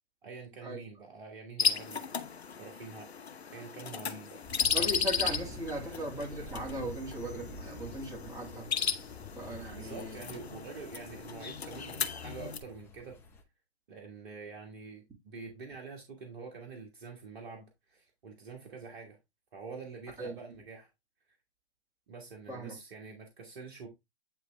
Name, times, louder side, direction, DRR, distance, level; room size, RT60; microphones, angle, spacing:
voice 1, 0.2-3.1 3.5-4.5 9.7-13.2 13.9-19.2 19.5-20.9 22.1-23.9, right 4 dB, 50° right, 1.5 m, -46 dB
sound 1, 1.6-12.6, left 6 dB, 75° left, 0.9 m, -35 dB
sound 2, 4.4-13.4, left 2 dB, 5° left, 0.7 m, -48 dB
voice 2, 4.7-8.7 9.4-10.2 20.2-20.4 22.5-22.8, right 1 dB, 10° right, 2.1 m, -38 dB
9.2 x 3.2 x 3.2 m
figure-of-eight pair, 130°, 32 cm